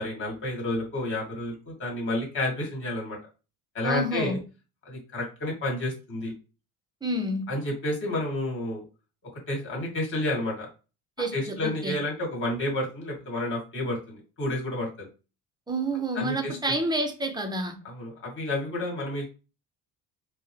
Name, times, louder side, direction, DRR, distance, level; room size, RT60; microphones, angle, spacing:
voice 1, 0.0-3.2 3.7-4.4 4.9-6.3 7.5-8.8 9.5-10.7 11.3-15.1 15.9-16.7 17.8-19.3, left 1 dB, 35° left, 2.1 m, -30 dB
voice 2, 3.8-4.4 7.0-7.5 11.2-12.0 15.7-17.8, right 1 dB, 10° right, 0.6 m, -29 dB
4.4 x 2.1 x 3.1 m
cardioid pair, 140°, 34 cm